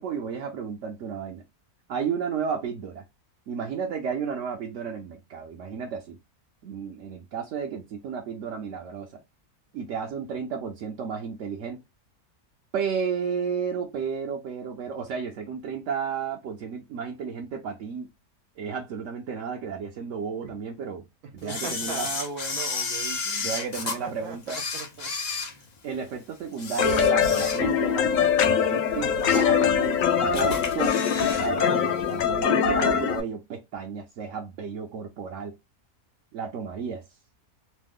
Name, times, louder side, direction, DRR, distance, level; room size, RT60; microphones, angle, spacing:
voice 1, 0.0-1.4 1.9-3.0 3.5-6.2 6.6-9.2 9.7-11.8 12.7-18.1 18.6-21.1 21.3-22.1 23.4-24.6 25.8-28.1 28.7-30.0 30.3-30.9 31.2-35.5 36.3-37.0, right 6 dB, 65° right, 0.8 m, -32 dB
voice 2, 21.4-23.5 24.0-25.1 25.5-25.7, right 4 dB, 85° right, 1.3 m, -38 dB
Camera, 21.5-24.0 24.4-26.1 26.5-27.9 28.3-28.4 29.0-29.6 29.9-30.0 30.3-31.5 31.7-31.8, left 4 dB, 45° left, 0.5 m, -32 dB
sound 1, 26.8-33.2, left 7 dB, 70° left, 1.0 m, -23 dB
3.1 x 2.0 x 3.4 m
omnidirectional pair, 1.6 m